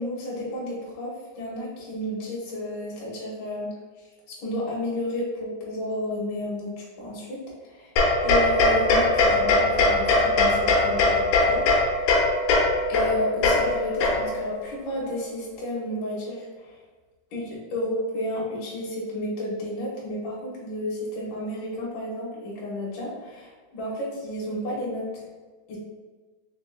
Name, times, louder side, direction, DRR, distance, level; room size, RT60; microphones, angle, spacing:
voice 1, 0.0-3.7 4.3-7.9 8.2-11.6 12.9-16.8 17.3-25.2 25.7-25.8, left 1 dB, 60° left, -6 dB, 2.4 m, -31 dB
sound 1, 8.0-14.5, left 2 dB, 80° left, 2.6 m, -21 dB
6.4 x 2.9 x 2.2 m, 1.4 s
omnidirectional pair, 4.9 m